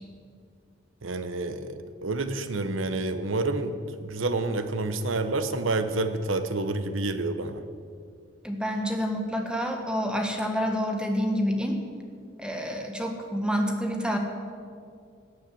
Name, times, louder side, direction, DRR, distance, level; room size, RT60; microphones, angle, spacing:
voice 1, 1.0-7.6, right 2 dB, 75° right, 10 dB, 1.0 m, -29 dB
voice 2, 8.4-11.8 12.4-14.2, equal, 5° right, 3 dB, 1.5 m, -28 dB
17.5 x 9.0 x 7.7 m, 2.3 s
head